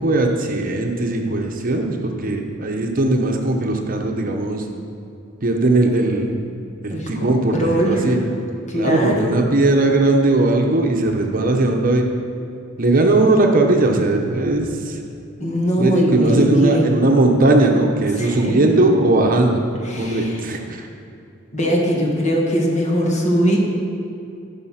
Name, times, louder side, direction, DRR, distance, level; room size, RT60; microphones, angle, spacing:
voice 1, 0.0-4.6 5.4-6.4 6.8-8.2 8.7-12.1 12.8-15.0 15.8-19.6 20.0-20.9, right 2 dB, 45° right, 2 dB, 0.9 m, -18 dB
voice 2, 6.9-8.4 8.7-9.4 15.4-16.9 18.2-18.6 19.8-20.4 21.5-23.6, equal, 40° left, -1 dB, 1.8 m, -21 dB
14.5 x 5.7 x 5.7 m, 2.6 s
head